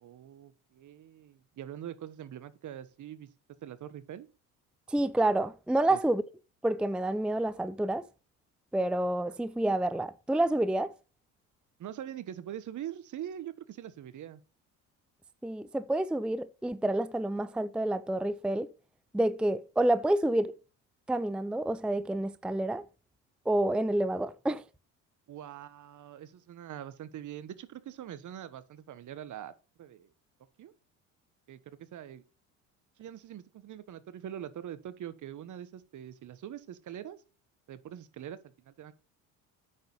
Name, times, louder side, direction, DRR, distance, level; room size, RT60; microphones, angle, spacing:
voice 1, 0.0-3.3 3.6-4.3 5.9-6.0 11.8-14.4 25.3-29.5 29.8-30.1 30.6-30.7 31.5-32.2 33.0-37.2 37.7-38.9, right 10 dB, 50° right, 1.3 m, -43 dB
voice 2, 4.9-6.2 6.6-8.0 8.7-10.9 15.4-18.7 19.1-20.5 21.1-22.8 23.5-24.6, right 1 dB, 5° right, 0.5 m, -28 dB
9.3 x 6.6 x 5.5 m
supercardioid pair, 75°, 38 cm